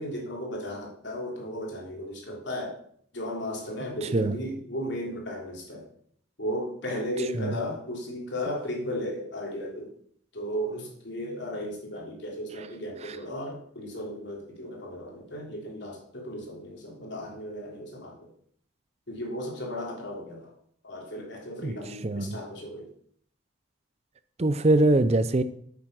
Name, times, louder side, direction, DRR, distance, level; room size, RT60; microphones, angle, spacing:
voice 1, 0.0-2.8 3.1-5.8 6.4-9.9 10.3-18.3 19.1-20.5 20.8-22.9, equal, 60° left, -1 dB, 3.5 m, -35 dB
voice 2, 4.0-4.4 7.3-7.5 13.0-13.2 21.6-21.7 22.0-22.4 24.4-25.4, right 2 dB, 30° right, 13 dB, 0.5 m, -23 dB
8.8 x 8.2 x 6.0 m, 0.63 s
head